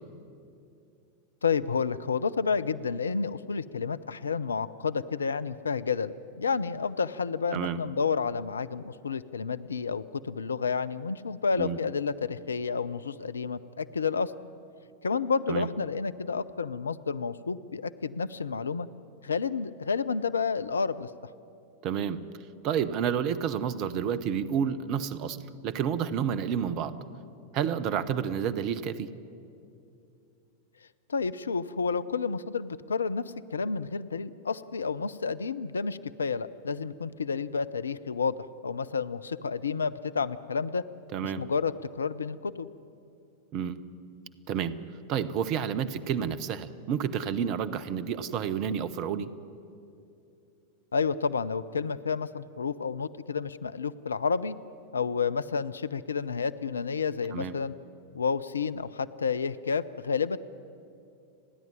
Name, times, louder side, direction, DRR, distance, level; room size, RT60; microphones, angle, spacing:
voice 1, 1.4-14.3 15.0-18.9 19.2-21.1 31.1-33.2 33.5-38.4 38.6-40.8 41.2-42.7 50.9-54.5 54.9-57.7 58.1-60.4, left 5 dB, 75° left, 15 dB, 0.5 m, -30 dB
voice 2, 21.8-22.2 22.6-25.4 25.6-27.0 27.5-29.1 41.1-41.4 43.5-43.8 44.5-44.8 45.1-49.3 57.3-57.5, right 8 dB, 40° right, 15 dB, 0.9 m, -30 dB
30.0 x 11.0 x 9.6 m, 2.6 s
figure-of-eight pair, 90°, 0 cm